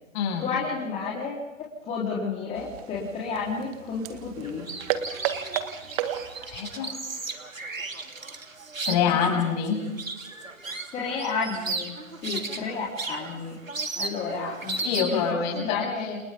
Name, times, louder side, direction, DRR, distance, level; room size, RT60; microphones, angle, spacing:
voice 1, 0.4-1.5 1.9-4.6 9.1-9.2 10.9-11.9 12.2-13.5 14.0-16.2, left 4 dB, 15° left, -6 dB, 4.5 m, -31 dB
sound 1, 2.5-6.6, right 11 dB, 30° right, 1.8 m, -33 dB
sound 2, 4.4-15.3, right 3 dB, 80° right, 3.0 m, -35 dB
voice 2, 6.4-6.9 8.8-9.8 14.8-15.8, left 7 dB, 30° left, 2 dB, 7.9 m, -25 dB
30.0 x 29.0 x 4.0 m, 0.94 s
figure-of-eight pair, 130°, 39 cm